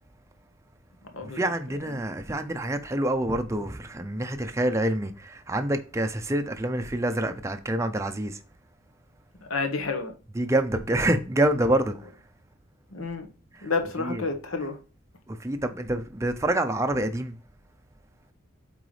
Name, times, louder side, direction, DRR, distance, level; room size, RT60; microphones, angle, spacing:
voice 1, 1.2-8.4 10.3-12.2 13.5-14.7 15.3-17.4, right 1 dB, 15° right, 0.5 m, -27 dB
voice 2, 9.4-10.1 12.9-13.3 13.6-14.8, left 4 dB, 75° left, 1.1 m, -29 dB
7.9 x 3.8 x 3.2 m
head